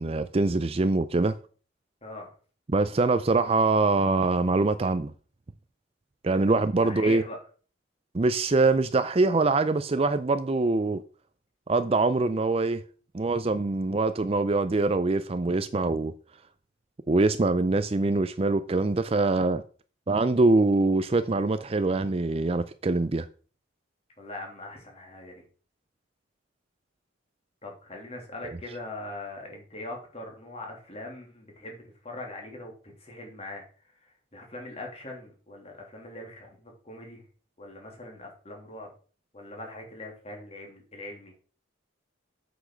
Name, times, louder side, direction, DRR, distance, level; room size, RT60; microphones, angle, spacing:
voice 1, 0.0-1.4 2.7-5.1 6.2-7.2 8.1-11.0 11.7-12.8 13.1-16.1 17.1-19.6 20.1-23.3 28.4-28.6, right 3 dB, 30° right, 0.5 m, -24 dB
voice 2, 2.0-2.3 6.3-6.4 6.8-7.4 24.2-25.4 27.6-37.2 37.6-38.9 39.3-41.3, left 2 dB, 35° left, 3.1 m, -41 dB
8.2 x 6.1 x 6.3 m
head